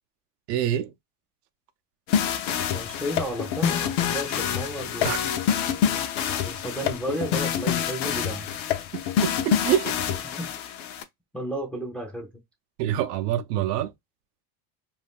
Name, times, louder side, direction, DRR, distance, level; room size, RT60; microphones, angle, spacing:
voice 1, 0.5-0.9 5.0-5.2 9.2-10.0 12.8-13.9, right 11 dB, 85° right, 0.6 m, -26 dB
sound 1, 2.1-11.0, left 9 dB, 50° left, 0.6 m, -27 dB
voice 2, 2.7-5.3 6.4-8.5 10.4-10.5 11.3-12.3, equal, 5° left, 0.4 m, -32 dB
2.6 x 2.2 x 3.5 m
supercardioid pair, 130°, 46 cm